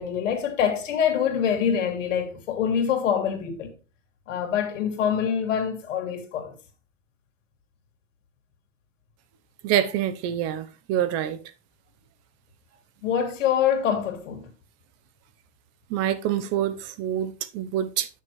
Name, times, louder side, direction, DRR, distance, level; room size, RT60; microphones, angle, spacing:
voice 1, 0.0-3.7 4.3-6.6 13.0-14.5, left 8 dB, 85° left, 2.4 m, -25 dB
voice 2, 9.6-11.4 15.9-18.1, right 11 dB, 45° right, 0.9 m, -26 dB
9.7 x 6.5 x 3.2 m
supercardioid pair, 135°, 37 cm